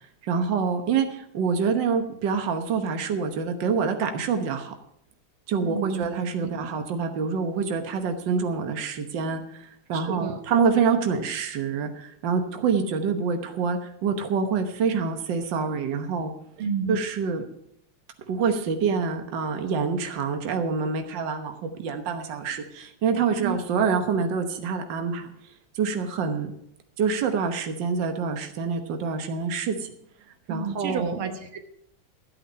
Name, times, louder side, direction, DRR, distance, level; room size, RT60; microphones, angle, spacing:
voice 1, 0.2-4.7 5.5-16.3 16.9-17.4 18.3-25.3 25.7-26.5 27.0-29.9 30.5-31.2, right 5 dB, 65° right, 6 dB, 1.8 m, -26 dB
voice 2, 5.6-6.0 9.9-10.4 16.6-17.0 23.4-23.6 30.5-31.6, right 6 dB, 80° right, 6 dB, 2.0 m, -30 dB
13.5 x 8.9 x 5.5 m, 0.74 s
omnidirectional pair, 2.2 m